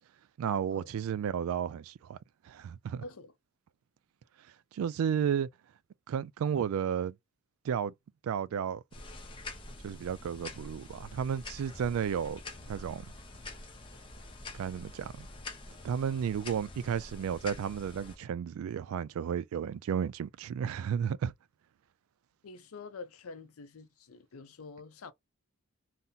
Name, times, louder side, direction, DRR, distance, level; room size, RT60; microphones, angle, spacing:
voice 1, 0.4-2.2 2.4-3.0 4.7-5.5 6.1-7.1 7.6-7.9 8.2-8.8 9.8-12.4 12.7-13.1 14.5-15.3 15.8-21.3, right 8 dB, 75° right, 0.3 m, -33 dB
voice 2, 3.0-3.3 22.4-25.1, left 4 dB, 90° left, 0.6 m, -47 dB
sound 1, 8.9-18.2, left 2 dB, 25° left, 0.6 m, -46 dB
2.7 x 2.1 x 3.7 m
head